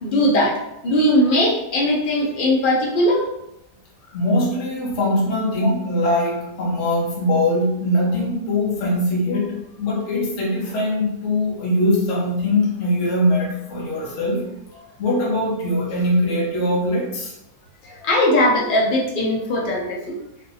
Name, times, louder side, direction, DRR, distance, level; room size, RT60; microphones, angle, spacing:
voice 1, 0.0-0.6 0.8-3.3 17.8-20.1, left 1 dB, 80° left, -3 dB, 0.4 m, -19 dB
voice 2, 4.1-14.4 15.0-17.3, left 1 dB, 50° left, -4 dB, 1.1 m, -21 dB
3.3 x 2.6 x 2.6 m, 0.85 s
omnidirectional pair, 1.8 m